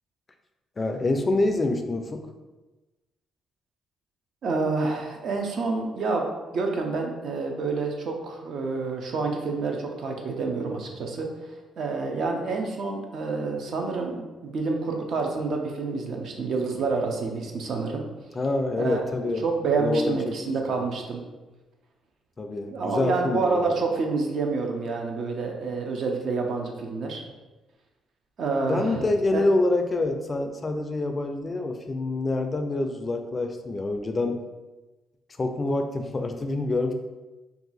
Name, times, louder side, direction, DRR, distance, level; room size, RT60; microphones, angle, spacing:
voice 1, 0.8-2.3 18.3-19.4 19.8-20.4 20.7-20.8 22.4-23.8 28.6-34.4 35.4-36.9, left 2 dB, 30° left, 6 dB, 0.3 m, -26 dB
voice 2, 4.4-6.3 6.5-11.3 11.8-18.0 18.8-21.2 22.7-27.2 28.4-29.0 29.3-29.4, right 4 dB, 65° right, 2 dB, 0.5 m, -28 dB
2.7 x 2.3 x 4.0 m, 1.1 s
cardioid pair, 105°, 0 cm